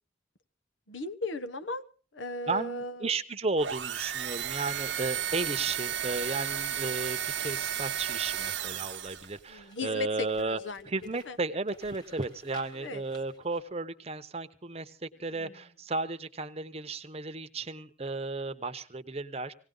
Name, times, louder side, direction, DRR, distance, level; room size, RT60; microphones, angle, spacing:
voice 1, 0.9-1.8 2.1-3.1 9.5-10.9 11.2-11.4 12.7-13.0 15.2-15.5, left 2 dB, 80° left, 10 dB, 1.0 m, -36 dB
voice 2, 2.5-10.6 10.8-19.5, right 3 dB, 35° right, 9 dB, 0.9 m, -34 dB
sound 1, 3.6-9.4, right 10 dB, 70° right, 0.9 m, -33 dB
sound 2, 6.3-13.6, equal, 20° left, 2.1 m, -56 dB
19.0 x 17.5 x 3.9 m, 0.36 s
head